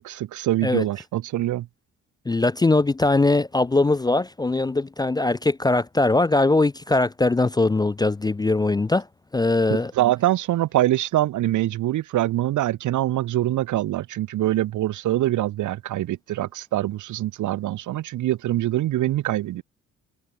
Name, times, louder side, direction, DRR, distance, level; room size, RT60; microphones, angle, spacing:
voice 1, 0.0-1.7 9.7-19.6, right 14 dB, 80° right, 1.6 m, -24 dB
voice 2, 2.3-9.0 9.3-9.9, left 2 dB, 15° left, 0.4 m, -21 dB
cardioid pair, 90°, 30 cm